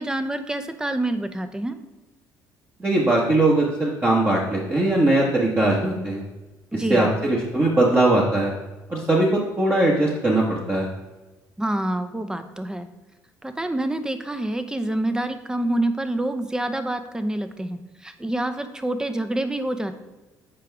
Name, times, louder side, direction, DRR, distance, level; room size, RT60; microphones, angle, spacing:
voice 1, 0.0-1.8 6.7-7.1 11.6-12.9 13.4-19.9, right 1 dB, 10° right, 10 dB, 0.7 m, -27 dB
voice 2, 2.8-6.2 6.9-8.5 8.9-10.9, right 2 dB, 25° right, -4 dB, 1.3 m, -20 dB
7.6 x 4.7 x 3.5 m, 1.1 s
supercardioid pair, 70°, 8 cm